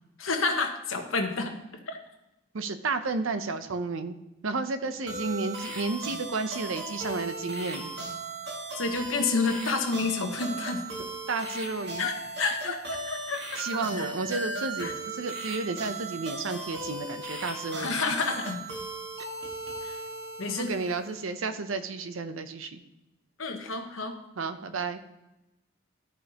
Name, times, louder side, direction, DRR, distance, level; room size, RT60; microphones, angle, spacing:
voice 1, 0.2-1.5 1.9-2.0 8.8-10.8 12.0-13.6 14.0-14.1 14.8-14.9 17.8-18.6 19.8-20.0 20.4-20.7 23.4-24.2, left 4 dB, 90° left, 4 dB, 1.2 m, -29 dB
voice 2, 2.5-4.2 4.4-7.9 11.3-12.1 13.6-18.0 20.5-22.8 24.4-25.0, right 3 dB, 85° right, 9 dB, 0.7 m, -32 dB
sound 1, 5.1-21.2, right 2 dB, 60° right, 1.7 m, -37 dB
13.0 x 5.2 x 2.9 m, 0.95 s
head